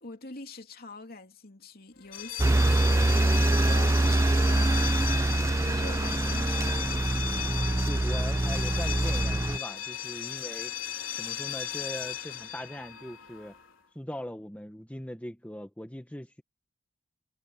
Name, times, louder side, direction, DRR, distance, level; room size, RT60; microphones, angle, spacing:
voice 1, 0.0-3.3 3.6-5.2 5.5-6.9, left 3 dB, 50° left, 2.9 m, -45 dB
sound 1, 2.0-13.7, left 9 dB, 75° left, 4.5 m, -36 dB
sound 2, 2.4-9.6, right 2 dB, 15° right, 0.4 m, -25 dB
voice 2, 7.8-10.7 11.2-13.6 13.9-16.4, left 1 dB, 5° left, 1.2 m, -40 dB
head